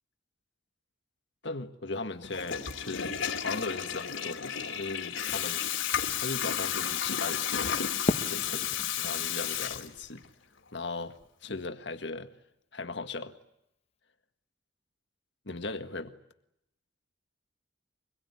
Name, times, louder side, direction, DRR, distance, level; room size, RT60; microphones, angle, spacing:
voice 1, 1.4-5.7 6.2-7.9 8.3-10.2 10.7-12.3 12.7-13.4 15.5-16.1, left 3 dB, 60° left, 9 dB, 1.7 m, -38 dB
Water tap faucet / Toilet flush, 2.2-10.3, left 9 dB, 80° left, 2.8 m, -32 dB
Fireworks, 8.1-11.1, left 1 dB, 30° left, 1.2 m, -35 dB
25.0 x 21.5 x 9.7 m, 0.79 s
head